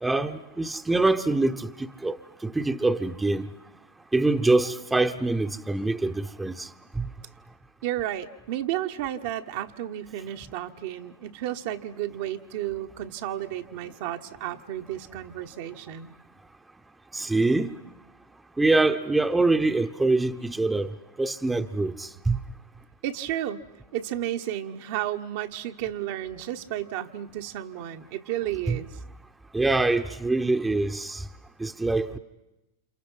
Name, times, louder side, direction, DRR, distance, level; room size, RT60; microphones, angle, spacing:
voice 1, 0.0-2.2 2.4-3.5 4.1-6.7 7.0-7.1 17.1-17.7 18.6-20.9 21.2-22.4 28.7-28.8 29.5-31.2 31.6-32.2, right 2 dB, 10° right, 1.0 m, -24 dB
voice 2, 7.8-16.1 23.0-29.0, right 12 dB, 55° right, 1.2 m, -32 dB
30.0 x 28.0 x 5.7 m
hypercardioid pair, 95°, 0 cm